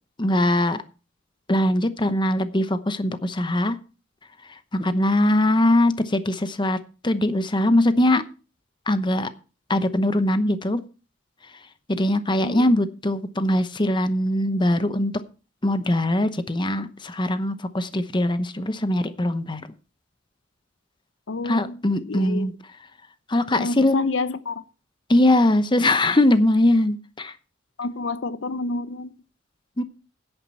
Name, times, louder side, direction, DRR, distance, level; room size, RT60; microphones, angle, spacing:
voice 1, 0.2-0.8 1.5-3.8 4.7-6.8 7.0-8.2 8.9-9.3 9.7-10.8 11.9-15.1 15.6-19.6 21.4-22.5 23.3-24.0 25.1-27.3 29.8-29.9, left 1 dB, 25° left, 0.8 m, -21 dB
voice 2, 21.3-21.8 22.1-22.5 23.5-24.6 27.8-29.1, left 3 dB, 70° left, 0.7 m, -28 dB
10.5 x 9.0 x 5.4 m
head